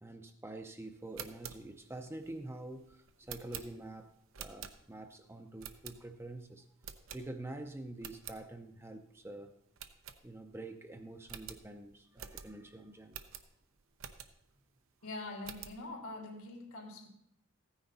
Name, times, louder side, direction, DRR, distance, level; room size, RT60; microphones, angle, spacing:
voice 1, 0.0-4.1 4.4-6.7 7.1-9.6 10.2-13.2, right 2 dB, 10° right, 6 dB, 0.6 m, -46 dB
sound 1, 1.0-5.1 5.6-6.3 6.8-7.6 7.9-8.4 8.9-9.0 9.2-9.3 9.8-10.7 10.9-11.0 11.3-14.6 15.0-15.8, right 8 dB, 70° right, 0.8 m, -49 dB
voice 2, 15.0-17.1, left 2 dB, 85° left, 2 dB, 2.8 m, -44 dB
15.5 x 9.7 x 4.1 m, 0.76 s
head